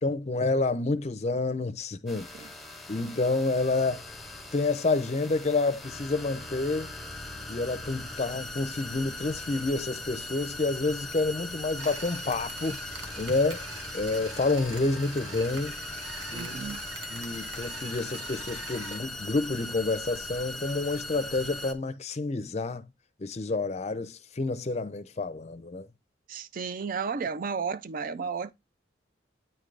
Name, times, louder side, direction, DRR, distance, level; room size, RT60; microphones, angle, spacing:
voice 1, 0.0-2.3 2.9-4.0 4.5-6.9 7.5-12.8 13.2-13.6 13.9-15.8 16.3-16.5 17.1-22.8 23.2-25.9, left 3 dB, 35° left, 0.5 m, -29 dB
sound 1, 2.1-21.7, left 2 dB, ahead, 0.7 m, -40 dB
sound 2, 11.8-19.0, right 3 dB, 90° right, 1.2 m, -44 dB
voice 2, 16.3-16.8 26.3-28.5, right 5 dB, 45° right, 0.4 m, -33 dB
8.9 x 3.8 x 3.3 m
head